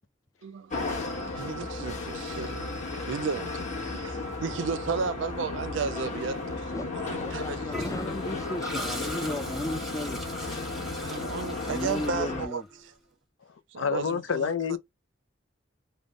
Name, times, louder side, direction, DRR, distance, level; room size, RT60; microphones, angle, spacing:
voice 1, 0.4-1.0 1.2-8.1 11.0-12.6 13.7-14.5, right 5 dB, 70° right, 0.4 m, -34 dB
sound 1, 0.7-12.5, left 3 dB, 40° left, 1.2 m, -34 dB
voice 2, 6.7-10.6 11.6-12.7, left 1 dB, 15° left, 0.4 m, -36 dB
Toilet flush, 7.7-12.8, equal, ahead, 0.9 m, -39 dB
voice 3, 13.8-14.8, left 6 dB, 90° left, 0.5 m, -28 dB
3.5 x 2.2 x 3.7 m
head